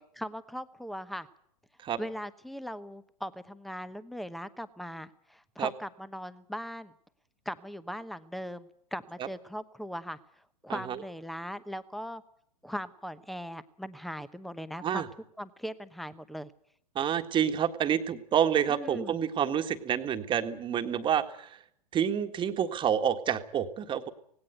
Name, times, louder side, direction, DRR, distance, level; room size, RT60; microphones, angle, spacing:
voice 1, 0.2-1.3 2.0-6.9 7.4-10.2 10.6-12.2 12.6-15.1 15.4-16.5 18.7-19.2, equal, ahead, 15 dB, 1.0 m, -39 dB
voice 2, 16.9-21.6 21.9-24.1, right 9 dB, 25° right, 8 dB, 1.7 m, -28 dB
18.5 x 17.5 x 9.1 m, 0.67 s
figure-of-eight pair, 105°, 21 cm